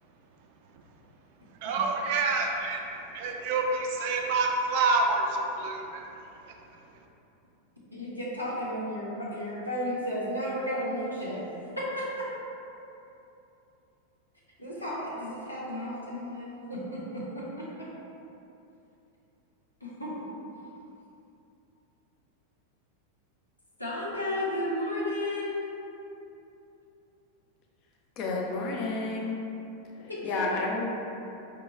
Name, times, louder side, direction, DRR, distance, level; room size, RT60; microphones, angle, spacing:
voice 1, 1.6-2.8 3.1-6.0, right 3 dB, 50° right, 2 dB, 0.4 m, -27 dB
voice 2, 7.9-11.4 11.8-12.3 14.6-17.9 19.8-20.1 23.8-25.7 30.1-30.8, left 1 dB, 85° left, -7 dB, 0.8 m, -33 dB
voice 3, 28.2-29.4 30.2-30.9, left 3 dB, 40° left, -2 dB, 0.5 m, -30 dB
4.6 x 2.9 x 2.3 m, 2.9 s
figure-of-eight pair, 90°, 0 cm